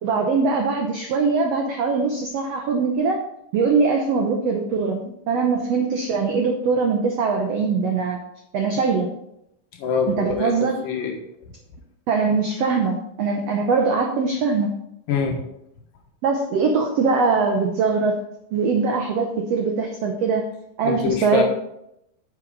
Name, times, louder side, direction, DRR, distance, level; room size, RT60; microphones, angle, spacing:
voice 1, 0.0-3.2 3.5-8.2 8.5-9.1 10.2-10.8 12.1-14.7 16.2-18.2 18.5-20.5 20.8-21.4, right 4 dB, 80° right, 3 dB, 1.4 m, -22 dB
voice 2, 9.8-10.5 10.8-11.2 15.1-15.4 20.8-21.4, left 6 dB, 70° left, 1 dB, 3.1 m, -24 dB
9.2 x 7.4 x 3.9 m, 0.78 s
omnidirectional pair, 4.1 m